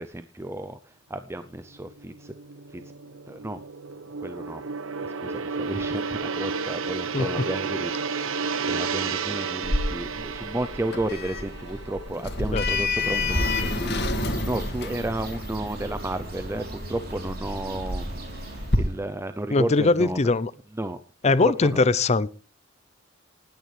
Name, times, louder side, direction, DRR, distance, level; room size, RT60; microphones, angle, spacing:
voice 1, 0.0-2.3 2.7-2.8 3.3-3.6 4.2-4.6 5.0-7.9 8.2-18.1 18.4-20.3 20.7-21.0 21.4-21.8, right 1 dB, 15° right, 0.5 m, -33 dB
Gong, 1.7-14.2 14.5-14.8, right 5 dB, 85° right, 1.0 m, -32 dB
Sliding door, 9.6-18.8, left 2 dB, 55° left, 2.0 m, -30 dB
Bird, 13.2-19.1, right 1 dB, 50° right, 3.5 m, -35 dB
voice 2, 19.5-20.5 21.2-22.3, left 3 dB, 35° left, 0.5 m, -21 dB
19.5 x 9.3 x 3.3 m
head